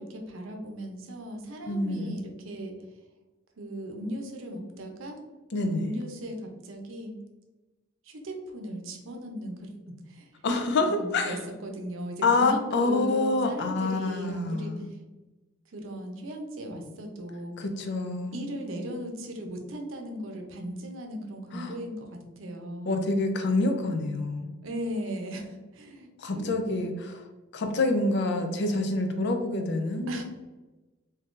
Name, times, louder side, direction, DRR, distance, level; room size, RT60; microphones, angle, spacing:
voice 1, 0.0-3.0 3.6-5.2 5.6-7.2 8.0-9.7 10.1-10.4 10.8-15.0 15.7-17.6 18.3-23.0 24.6-26.9 30.1-30.2, equal, 70° right, 2 dB, 0.6 m, -37 dB
voice 2, 1.7-2.2 5.5-6.0 10.4-11.4 12.2-14.9 17.6-18.4 21.5-21.7 22.9-24.5 26.2-27.2 27.5-30.2, left 2 dB, 60° left, 5 dB, 0.5 m, -27 dB
2.7 x 2.5 x 3.6 m, 1.1 s
head